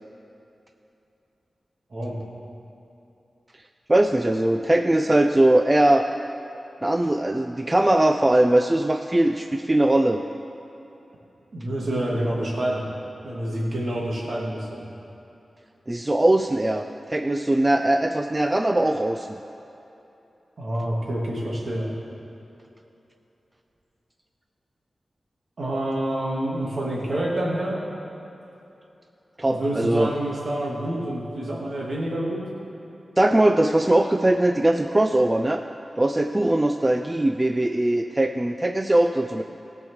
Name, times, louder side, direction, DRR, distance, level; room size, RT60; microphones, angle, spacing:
voice 1, 3.9-6.1 6.8-10.2 15.9-16.8 17.1-19.3 29.4-30.1 33.2-35.6 36.0-39.4, right 1 dB, 25° right, 6 dB, 0.5 m, -20 dB
voice 2, 11.5-12.9 13.2-14.8 20.6-21.9 25.6-27.8 29.5-32.4, right 1 dB, 65° right, -4 dB, 2.6 m, -27 dB
16.0 x 5.4 x 6.4 m, 2.9 s
cardioid pair, 45°, 0 cm